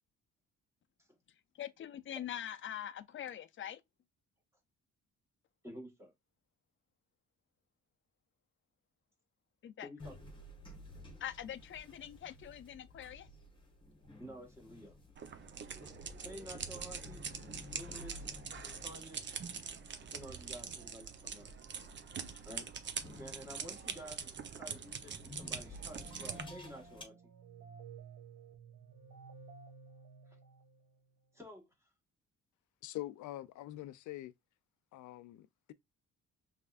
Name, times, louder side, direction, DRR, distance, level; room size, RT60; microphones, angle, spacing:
voice 1, 1.5-3.8 9.6-9.9 11.2-13.3 18.1-18.2, left 10 dB, 45° left, 0.5 m, -44 dB
voice 2, 5.6-6.1 9.8-10.3 14.2-15.0 16.2-17.2 17.7-18.3 18.6-19.3 20.0-21.5 22.4-22.7 23.2-27.2 30.3-30.4 31.3-31.9, equal, 10° right, 1.7 m, -51 dB
sound 1, 10.0-27.0, left 1 dB, 15° left, 1.4 m, -54 dB
sound 2, 15.2-26.4, right 6 dB, 40° right, 0.8 m, -44 dB
sound 3, 25.7-31.1, right 5 dB, 65° right, 1.2 m, -54 dB
voice 3, 32.8-34.3 34.9-35.7, left 15 dB, 90° left, 0.5 m, -44 dB
5.6 x 3.4 x 2.4 m
cardioid pair, 135°, 29 cm